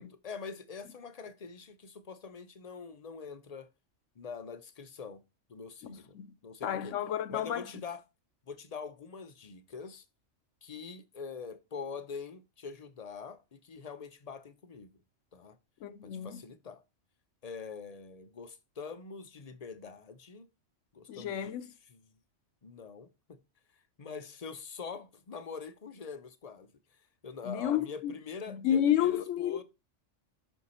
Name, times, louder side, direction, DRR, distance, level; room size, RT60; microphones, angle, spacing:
voice 1, 0.0-3.7 4.2-5.2 5.5-6.2 6.4-6.9 7.3-8.0 8.5-10.0 10.6-15.0 15.3-15.6 16.2-16.8 17.4-20.5 20.9-21.5 21.9-22.2 22.6-23.4 24.0-26.7 27.2-29.6, left 5 dB, 40° left, 0.6 m, -44 dB
voice 2, 5.8-6.3 6.6-7.7 15.8-16.4 21.1-21.7 27.4-28.1 28.5-29.6, left 10 dB, 90° left, 1.0 m, -31 dB
5.8 x 5.4 x 4.2 m
omnidirectional pair, 1.3 m